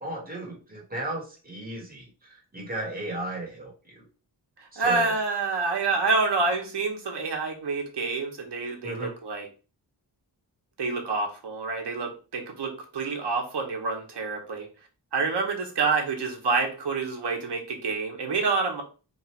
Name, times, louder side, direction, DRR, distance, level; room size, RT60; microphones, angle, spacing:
voice 1, 0.0-2.1 2.5-4.0 4.7-5.1 8.8-9.1, right 1 dB, 20° right, -1 dB, 1.5 m, -35 dB
voice 2, 4.6-9.5 10.8-14.7 15.1-18.8, right 4 dB, 70° right, 2 dB, 1.1 m, -27 dB
3.2 x 2.6 x 4.5 m, 0.34 s
wide cardioid pair, 95°, 42 cm